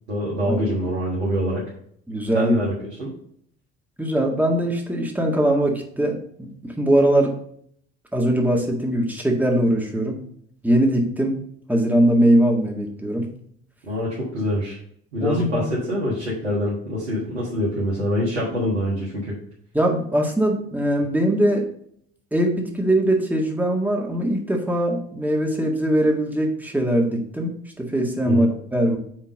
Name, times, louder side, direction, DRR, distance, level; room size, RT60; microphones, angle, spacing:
voice 1, 0.1-1.6 2.3-3.1 13.8-14.8 15.1-19.4 28.2-28.5, equal, 85° right, -5 dB, 1.6 m, -25 dB
voice 2, 2.1-2.6 4.0-7.4 8.1-10.2 10.6-11.4 11.7-13.3 15.2-15.7 19.7-21.7 22.3-29.0, right 1 dB, 5° right, 0 dB, 1.8 m, -21 dB
6.2 x 3.7 x 5.0 m, 0.65 s
hypercardioid pair, 60°, 33 cm